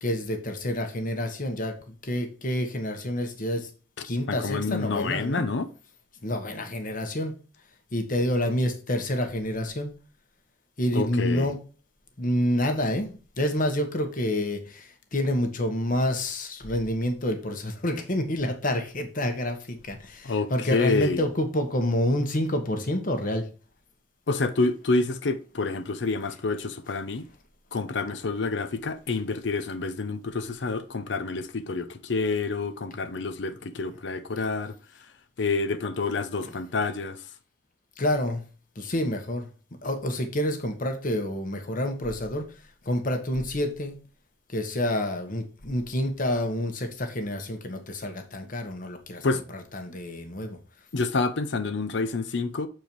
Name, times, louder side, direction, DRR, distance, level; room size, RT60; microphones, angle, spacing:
voice 1, 0.0-3.7 4.0-5.4 6.2-7.3 7.9-9.9 10.8-11.6 12.2-23.4 36.4-36.5 38.0-38.4 38.7-39.5 39.8-44.0 44.5-49.3 49.5-50.6, left 1 dB, 50° left, 1.3 m, -28 dB
voice 2, 4.0-5.7 10.9-11.5 20.2-21.2 24.3-27.3 27.7-34.7 35.4-37.2 49.2-49.4 50.9-52.7, left 3 dB, 70° left, 0.6 m, -28 dB
7.0 x 4.5 x 4.5 m
head